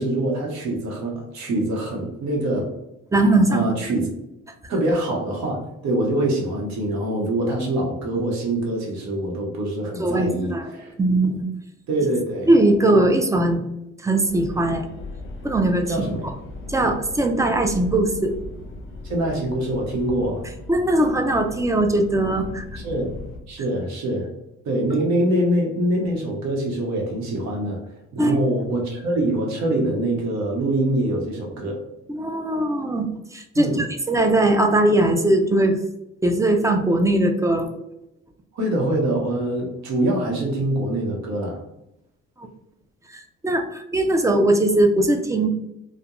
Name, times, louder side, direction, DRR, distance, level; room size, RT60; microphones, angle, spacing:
voice 1, 0.0-2.7 3.5-4.1 4.7-10.9 11.9-12.5 15.9-16.3 19.0-20.4 22.8-23.1 23.5-24.3 24.6-27.8 28.1-31.8 33.5-33.9 38.5-41.6, right 1 dB, 70° right, 0 dB, 0.9 m, -24 dB
voice 2, 3.1-3.7 10.0-10.6 11.0-11.5 12.5-13.7 14.0-14.9 15.4-16.0 16.7-18.3 20.7-22.6 28.2-28.4 32.1-35.8 36.2-37.7 42.4-42.5 43.1-45.5, right 1 dB, 10° right, 5 dB, 0.3 m, -20 dB
sound 1, 14.3-23.4, left 2 dB, 45° left, 0.7 m, -37 dB
2.3 x 2.1 x 2.9 m, 0.86 s
supercardioid pair, 75°, 29 cm